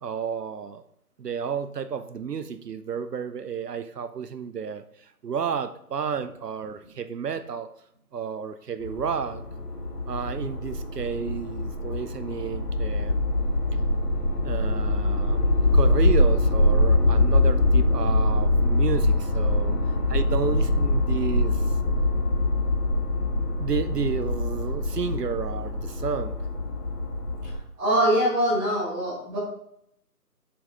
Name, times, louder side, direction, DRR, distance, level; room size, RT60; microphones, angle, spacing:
voice 1, 0.0-0.8 1.2-4.8 5.2-7.7 8.1-9.4 10.1-13.2 14.4-15.4 15.7-19.7 20.1-21.6 23.6-26.3, right 7 dB, 80° right, 11 dB, 0.7 m, -31 dB
sound 1, 8.8-27.6, left 2 dB, 80° left, 1.6 m, -23 dB
voice 2, 27.8-29.4, right 1 dB, 5° right, -10 dB, 1.5 m, -23 dB
6.9 x 5.3 x 3.7 m, 0.72 s
figure-of-eight pair, 160°, 47 cm